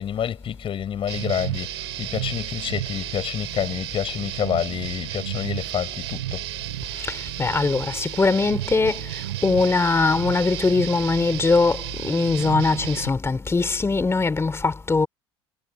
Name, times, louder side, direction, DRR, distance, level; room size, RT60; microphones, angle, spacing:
voice 1, 0.0-6.4, left 9 dB, 40° left, 6.0 m, -28 dB
sound 1, 1.1-13.1, right 15 dB, 75° right, 3.2 m, -32 dB
voice 2, 7.0-9.0 9.4-15.1, left 3 dB, 20° left, 3.0 m, -21 dB
hypercardioid pair, 70°, 13 cm